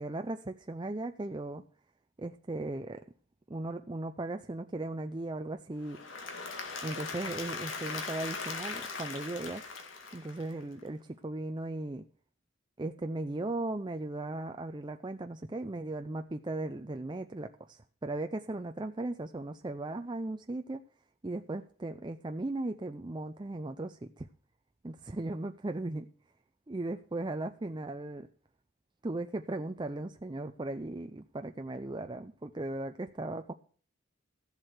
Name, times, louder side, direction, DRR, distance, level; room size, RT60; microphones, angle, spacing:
voice 1, 0.0-1.6 2.2-3.0 3.5-6.0 6.8-9.6 10.1-12.1 12.8-20.8 21.2-24.3 24.8-26.1 26.7-28.3 29.0-33.5, right 2 dB, 25° right, 6 dB, 0.5 m, -37 dB
Applause / Crowd, 5.8-10.8, left 4 dB, 80° left, 2.2 m, -40 dB
14.5 x 7.7 x 6.5 m, 0.43 s
head